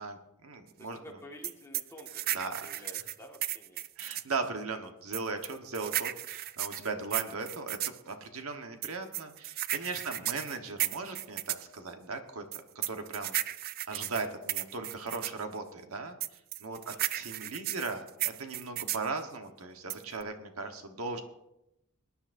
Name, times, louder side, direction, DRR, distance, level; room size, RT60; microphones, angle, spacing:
voice 1, 0.0-1.0 2.3-2.8 4.0-7.8 8.1-13.4 13.9-21.2, right 4 dB, 85° right, 6 dB, 1.2 m, -38 dB
voice 2, 0.8-3.8 10.2-10.3 16.7-17.0, equal, 15° left, 0 dB, 1.6 m, -51 dB
sound 1, 1.4-4.3 5.1-8.0 8.8-11.7 12.5-15.4 16.2-19.1 19.9-20.2, right 14 dB, 45° right, 0.3 m, -34 dB
22.5 x 10.0 x 2.6 m, 0.86 s
head